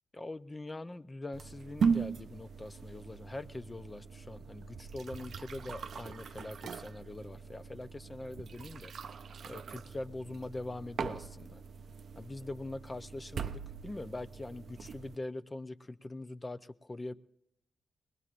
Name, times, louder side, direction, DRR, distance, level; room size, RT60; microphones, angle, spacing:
voice 1, 0.1-8.9 9.4-11.6 12.2-13.5 13.8-17.1, left 2 dB, 25° left, 0.5 m, -43 dB
sound 1, 1.3-15.2, right 6 dB, 75° right, 0.4 m, -39 dB
22.0 x 19.5 x 2.5 m
cardioid pair, 85°, 0 cm